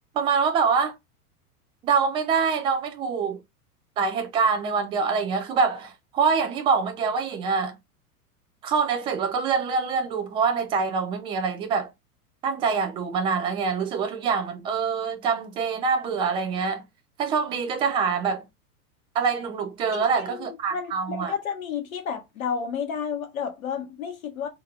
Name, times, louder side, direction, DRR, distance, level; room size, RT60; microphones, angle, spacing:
voice 1, 0.1-0.9 1.8-3.4 4.0-7.8 8.6-11.9 12.4-16.8 17.2-18.4 19.1-21.3, right 5 dB, 10° right, 0.4 m, -25 dB
voice 2, 19.9-24.5, left 7 dB, 60° left, 1.4 m, -31 dB
3.7 x 2.7 x 4.6 m
figure-of-eight pair, 95°, 47 cm